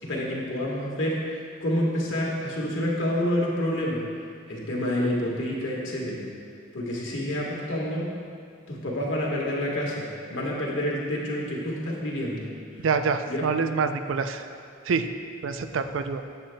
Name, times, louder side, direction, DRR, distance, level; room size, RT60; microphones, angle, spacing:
voice 1, 0.0-4.0 4.5-6.2 6.7-8.1 8.7-12.5 13.3-13.4, left 1 dB, 75° left, -3 dB, 1.4 m, -28 dB
voice 2, 12.8-14.5 14.9-15.1 15.4-16.2, right 5 dB, 80° right, 9 dB, 0.4 m, -26 dB
10.0 x 7.8 x 2.2 m, 2.2 s
head